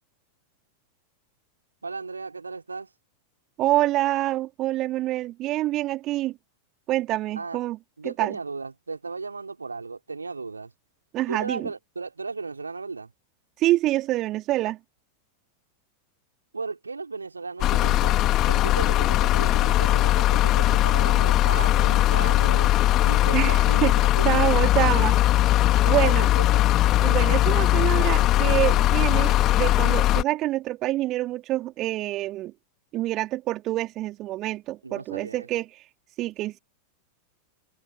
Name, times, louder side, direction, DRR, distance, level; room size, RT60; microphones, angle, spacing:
voice 1, 1.8-2.9 7.3-7.6 8.0-10.7 11.3-13.1 16.5-22.7 23.0-25.2 25.8-26.6 34.8-35.5, right 4 dB, 80° right, 4.2 m, -35 dB
voice 2, 3.6-6.4 6.9-7.8 8.0-8.4 11.1-11.7 13.6-14.8 23.3-23.9 24.2-25.1 25.9-26.3 27.0-32.5 32.9-35.7 36.2-36.6, right 16 dB, 35° right, 2.7 m, -26 dB
sound 1, 17.6-30.2, left 14 dB, 35° left, 2.8 m, -20 dB
figure-of-eight pair, 90°, 0 cm